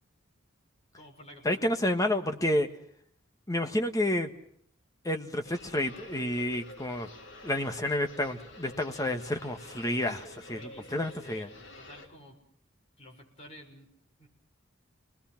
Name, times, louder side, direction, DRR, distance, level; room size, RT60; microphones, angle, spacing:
voice 1, 0.9-1.7 10.5-12.4 13.0-13.9 14.2-14.3, equal, 35° left, 0 dB, 6.4 m, -52 dB
voice 2, 1.4-2.7 3.5-4.3 5.0-7.1 7.4-11.5, left 1 dB, 20° left, 6 dB, 1.4 m, -30 dB
sound 1, 5.4-12.1, left 1 dB, 65° left, 3.4 m, -49 dB
29.5 x 20.5 x 5.9 m, 0.65 s
head